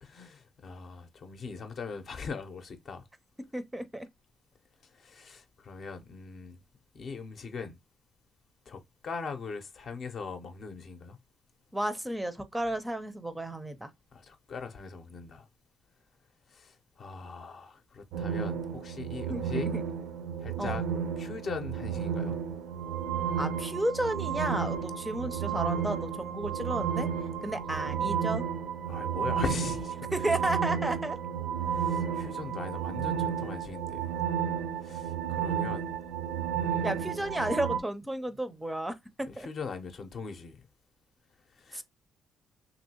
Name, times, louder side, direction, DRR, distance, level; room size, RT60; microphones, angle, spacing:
voice 1, 0.0-3.1 4.8-6.6 6.9-7.8 8.7-11.2 14.1-15.5 16.5-19.7 20.4-20.9 21.2-22.4 28.9-30.3 31.6-34.1 34.8-35.9 36.5-37.2 39.3-40.6 41.5-41.8, left 5 dB, 55° left, 0.6 m, -40 dB
voice 2, 3.5-4.1 11.7-13.9 19.3-19.4 20.6-20.8 23.4-27.1 27.4-28.4 30.1-31.2 36.8-38.9 39.4-39.5 41.7-41.8, right 1 dB, 10° right, 0.4 m, -32 dB
sound 1, 18.1-37.8, right 8 dB, 85° right, 0.5 m, -32 dB
3.0 x 2.6 x 2.7 m
cardioid pair, 90°, 0 cm